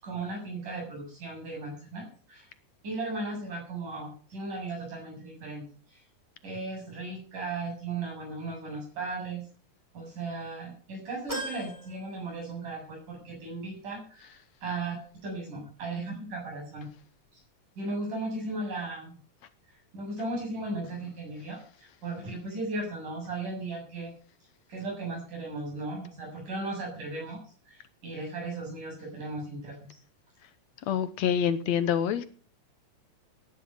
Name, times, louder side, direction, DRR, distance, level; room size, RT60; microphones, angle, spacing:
voice 1, 0.0-2.5 2.8-6.0 6.4-9.4 9.9-15.0 15.2-16.9 17.8-19.1 19.9-24.1 24.7-27.4 27.7-29.9, right 2 dB, 80° right, 9.3 m, -36 dB
sound 1, 11.3-12.9 13.4-13.5 14.7-14.8, right 1 dB, 5° right, 3.4 m, -40 dB
voice 2, 30.9-32.2, left 8 dB, 70° left, 1.9 m, -26 dB
16.0 x 11.0 x 5.6 m
omnidirectional pair, 3.6 m